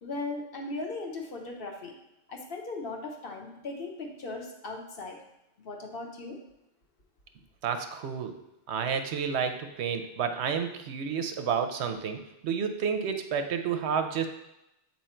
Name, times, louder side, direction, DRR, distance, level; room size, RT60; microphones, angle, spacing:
voice 1, 0.0-1.9 2.3-5.2 5.6-6.4, left 3 dB, 55° left, 1 dB, 1.0 m, -38 dB
voice 2, 7.6-8.4 8.7-14.3, right 7 dB, 75° right, 7 dB, 0.9 m, -30 dB
7.5 x 3.0 x 4.3 m, 0.88 s
omnidirectional pair, 1.2 m